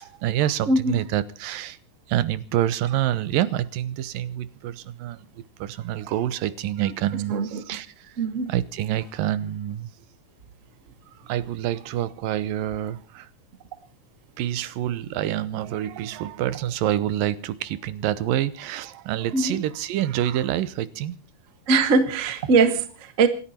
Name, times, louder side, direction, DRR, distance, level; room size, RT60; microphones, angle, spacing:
voice 1, 0.0-1.8 2.1-5.3 5.6-8.2 8.5-9.9 11.3-13.3 14.4-21.2, right 12 dB, 85° right, 2.7 m, -27 dB
voice 2, 0.6-1.1 7.1-7.8 8.2-8.6 19.3-19.6 21.7-23.3, right 4 dB, 45° right, 0.9 m, -22 dB
27.0 x 11.5 x 4.3 m
omnidirectional pair, 3.9 m